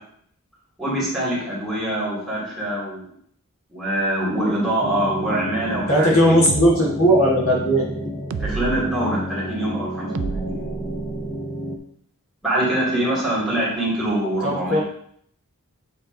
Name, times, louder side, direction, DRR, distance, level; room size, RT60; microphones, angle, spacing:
voice 1, 0.8-3.1 3.7-6.3 8.4-10.7 12.4-14.8, right 1 dB, ahead, -7 dB, 2.6 m, -24 dB
sound 1, 4.8-11.8, equal, 20° left, 0.6 m, -31 dB
voice 2, 5.9-7.8 14.4-14.8, equal, 65° left, -4 dB, 1.7 m, -17 dB
sound 2, 6.5-6.7 8.3-8.8 10.1-11.3, right 5 dB, 55° right, 0.3 m, -29 dB
7.8 x 3.6 x 3.9 m, 0.66 s
head